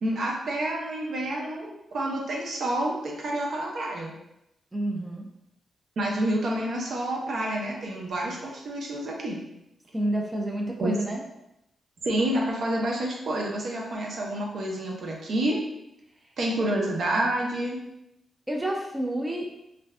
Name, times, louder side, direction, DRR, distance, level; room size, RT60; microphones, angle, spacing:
voice 1, 0.0-4.1 6.0-9.4 10.8-10.9 12.0-15.6 16.4-17.8, right 1 dB, 65° right, -1 dB, 0.6 m, -28 dB
voice 2, 4.7-5.3 9.9-11.2 18.5-19.5, right 1 dB, 15° right, 0 dB, 0.4 m, -29 dB
2.5 x 2.3 x 3.2 m, 0.85 s
cardioid pair, 80°, 0 cm